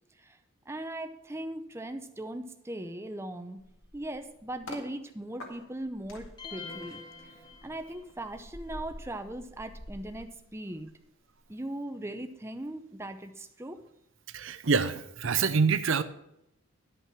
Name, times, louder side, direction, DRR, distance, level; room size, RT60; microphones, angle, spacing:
voice 1, 0.7-3.6 3.9-10.9 11.5-13.8, right 1 dB, 10° right, 7 dB, 0.5 m, -39 dB
sound 1, 3.6-4.9 5.4-11.0 11.3-11.6, left 1 dB, 60° left, 2.0 m, -47 dB
sound 2, 6.4-8.2, left 5 dB, 20° left, 1.1 m, -45 dB
voice 2, 14.3-16.0, right 5 dB, 60° right, 13 dB, 0.6 m, -26 dB
11.0 x 5.6 x 6.0 m, 0.81 s
head